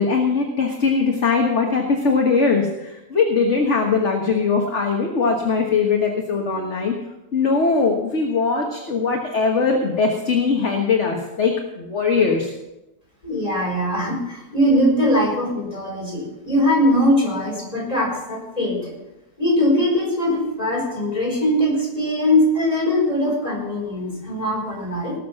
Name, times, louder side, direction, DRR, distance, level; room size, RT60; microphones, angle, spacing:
voice 1, 0.0-6.9 7.3-12.5, left 4 dB, 45° left, 1 dB, 1.7 m, -20 dB
voice 2, 13.2-18.9 19.4-25.1, left 1 dB, 20° left, -3 dB, 5.0 m, -21 dB
18.5 x 7.3 x 5.9 m, 0.95 s
omnidirectional pair, 1.8 m